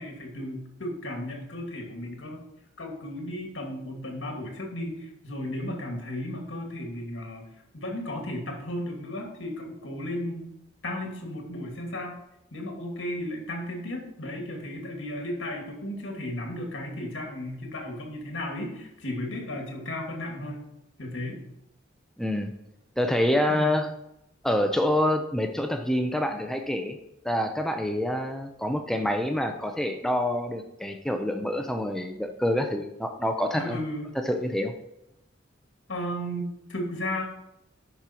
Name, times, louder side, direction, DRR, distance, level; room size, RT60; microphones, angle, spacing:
voice 1, 0.0-2.4 2.8-7.5 7.7-10.5 10.8-12.2 12.5-20.6 21.0-21.4 23.5-23.7 33.5-34.1 35.9-37.2, left 1 dB, 70° left, 1 dB, 2.2 m, -34 dB
voice 2, 22.2-22.5 23.0-23.9 24.4-27.0 27.2-33.8 34.1-34.7, left 1 dB, ahead, 5 dB, 0.6 m, -27 dB
11.0 x 5.4 x 4.4 m, 0.85 s
head